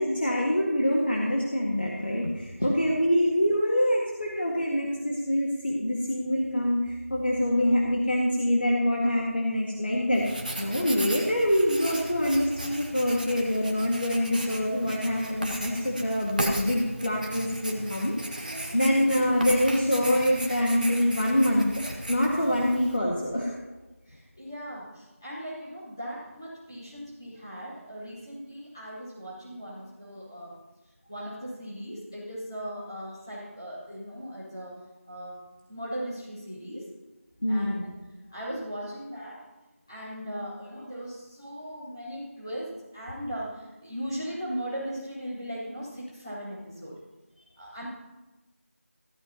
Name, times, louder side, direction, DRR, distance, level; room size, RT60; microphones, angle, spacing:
voice 1, 0.0-10.3 10.6-21.7 22.1-23.5 37.4-37.9, equal, 45° left, -3 dB, 2.0 m, -25 dB
Writing, 10.1-23.0, right 1 dB, 35° right, 1.5 m, -36 dB
voice 2, 18.4-18.9 24.0-30.6 31.1-34.8 35.1-35.4 35.7-36.8 37.5-37.9 38.3-39.5 39.9-47.0 47.6-47.8, equal, 15° left, -11 dB, 4.5 m, -38 dB
15.0 x 14.5 x 3.0 m, 1.1 s
figure-of-eight pair, 180°, 8 cm